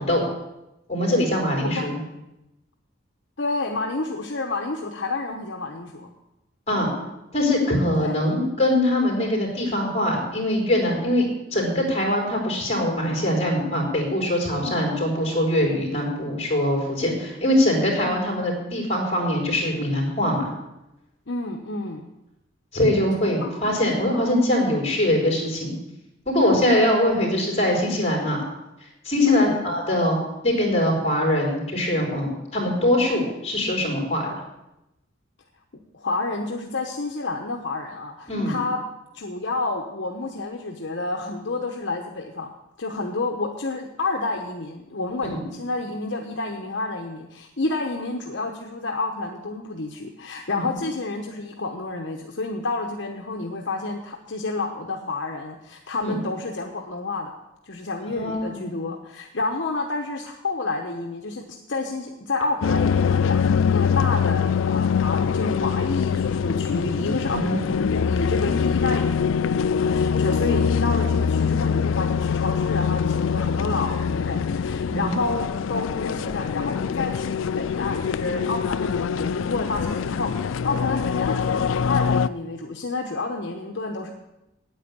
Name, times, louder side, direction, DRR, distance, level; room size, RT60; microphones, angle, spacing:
voice 1, 0.9-2.0 6.7-6.9 7.3-20.5 22.7-25.7 26.3-28.4 29.0-30.2 30.4-34.3 38.3-38.5 45.3-45.4 50.5-50.6 56.0-56.2 58.1-58.7 67.3-67.6 74.9-75.1, left 1 dB, 35° left, -1 dB, 4.1 m, -22 dB
voice 2, 3.4-6.1 8.0-8.1 14.6-14.9 21.3-22.1 23.4-24.3 29.2-29.6 35.9-38.8 39.1-42.5 42.8-57.3 57.6-84.1, left 3 dB, 65° left, 2 dB, 1.0 m, -29 dB
sound 1, 62.6-82.3, left 6 dB, 80° left, 0.4 m, -23 dB
9.1 x 9.0 x 8.6 m, 0.93 s
head